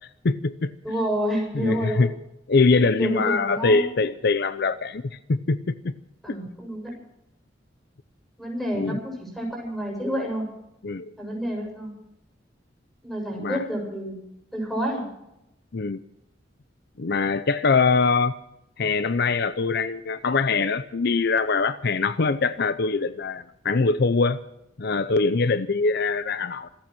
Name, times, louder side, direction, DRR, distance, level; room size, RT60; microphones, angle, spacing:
voice 1, 0.2-0.7 1.5-2.1 2.5-5.9 6.3-6.4 8.7-9.0 10.8-11.1 13.4-13.6 15.7-16.0 17.0-18.3 18.8-24.4 24.8-26.7, left 4 dB, 60° left, 13 dB, 0.6 m, -23 dB
voice 2, 0.8-2.1 3.0-3.9 6.2-7.0 8.4-10.5 11.2-11.9 13.0-14.2 14.5-15.0, equal, ahead, 0 dB, 7.1 m, -29 dB
26.5 x 9.0 x 6.1 m, 0.84 s
head